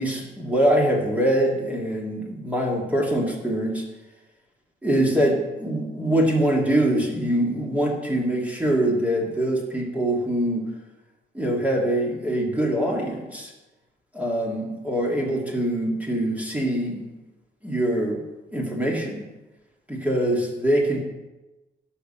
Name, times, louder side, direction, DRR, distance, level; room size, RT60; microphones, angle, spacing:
voice 1, 0.0-3.8 4.8-10.7 11.3-13.5 14.1-17.2 17.6-18.2 18.5-19.2 20.0-21.0, right 1 dB, 5° right, -1 dB, 2.0 m, -23 dB
12.5 x 5.8 x 6.6 m, 1.1 s
wide cardioid pair, 145°, 20 cm